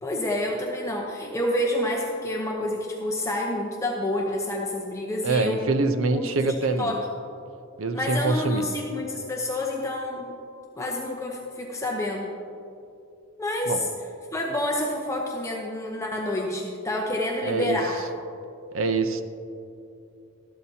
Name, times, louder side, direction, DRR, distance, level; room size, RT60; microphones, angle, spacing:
voice 1, 0.0-5.7 6.1-7.0 7.9-10.3 10.8-12.3 13.4-13.9 14.3-18.0, left 1 dB, 15° left, -1 dB, 0.8 m, -28 dB
voice 2, 5.2-6.9 7.8-8.7 13.7-13.8 17.4-17.8 18.7-19.2, right 3 dB, 75° right, 8 dB, 0.7 m, -25 dB
13.0 x 12.5 x 2.8 m, 2.6 s
head